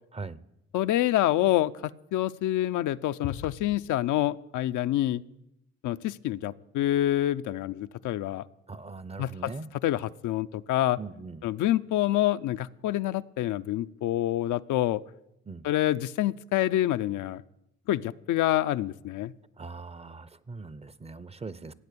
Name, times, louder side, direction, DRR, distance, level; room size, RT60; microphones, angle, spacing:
voice 1, 0.7-5.2 5.8-8.4 9.2-9.5 9.8-11.0 11.4-15.0 15.6-17.4 17.9-19.3, left 14 dB, 80° left, 11 dB, 0.6 m, -27 dB
voice 2, 8.7-9.7 11.0-11.4 15.5-15.6 19.6-21.7, right 4 dB, 20° right, 18 dB, 0.6 m, -40 dB
15.0 x 8.7 x 8.4 m, 0.84 s
cardioid pair, 90°, 30 cm